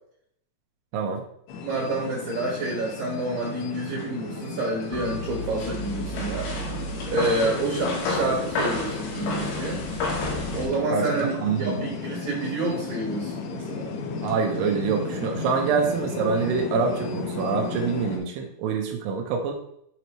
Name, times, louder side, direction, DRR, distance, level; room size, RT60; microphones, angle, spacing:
sound 1, 1.5-18.2, left 4 dB, 90° left, 3.2 m, -34 dB
voice 1, 1.6-6.5 7.1-9.8 10.5-11.3 11.6-13.9, right 2 dB, 60° right, -4 dB, 2.9 m, -28 dB
sound 2, 4.9-10.7, left 2 dB, 70° left, 3.1 m, -30 dB
voice 2, 10.9-11.9 14.2-19.5, right 5 dB, 80° right, 3 dB, 2.9 m, -26 dB
8.0 x 4.7 x 3.0 m, 0.71 s
omnidirectional pair, 4.9 m